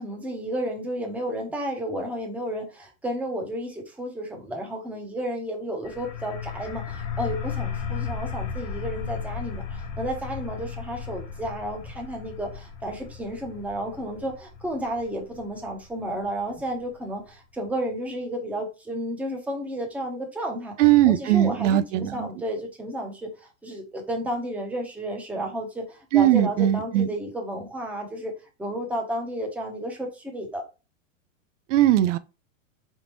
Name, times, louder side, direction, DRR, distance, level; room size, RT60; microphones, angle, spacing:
voice 1, 0.0-28.3 28.6-30.6, right 1 dB, 5° right, 0.7 m, -32 dB
sound 1, 5.8-17.3, left 6 dB, 50° left, 1.1 m, -35 dB
voice 2, 20.8-22.3 26.1-27.1 31.7-32.2, right 12 dB, 70° right, 0.5 m, -19 dB
3.8 x 3.6 x 3.0 m
supercardioid pair, 140°, 38 cm